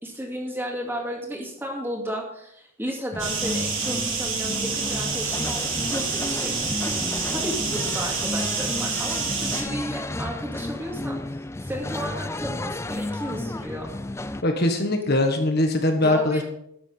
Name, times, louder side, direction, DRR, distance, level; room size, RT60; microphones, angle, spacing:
voice 1, 0.0-6.9 7.3-11.2 11.6-13.9 16.0-16.4, equal, 10° right, 0 dB, 2.3 m, -33 dB
sound 1, 3.1-14.4, left 2 dB, 10° left, 0.4 m, -32 dB
sound 2, 3.2-9.6, right 5 dB, 60° right, 3.7 m, -28 dB
voice 2, 14.4-16.4, left 1 dB, 45° left, 4 dB, 1.3 m, -21 dB
12.0 x 7.4 x 5.6 m, 0.75 s
head